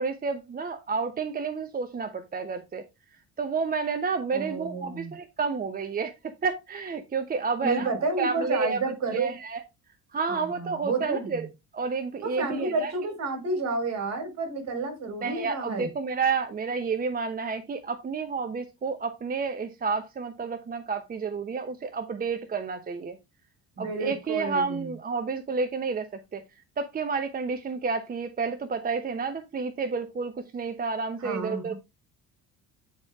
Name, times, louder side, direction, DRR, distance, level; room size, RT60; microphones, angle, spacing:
voice 1, 0.0-2.8 3.4-7.9 8.2-8.8 9.1-9.6 10.1-11.5 11.7-12.9 15.2-23.2 23.8-26.4 26.8-31.7, right 5 dB, 30° right, 0.9 m, -30 dB
voice 2, 4.3-5.1 7.6-9.4 10.3-11.5 12.2-15.9 23.8-24.9 31.2-31.7, right 3 dB, 55° right, 3.9 m, -30 dB
9.3 x 4.7 x 3.5 m
cardioid pair, 105°, 31 cm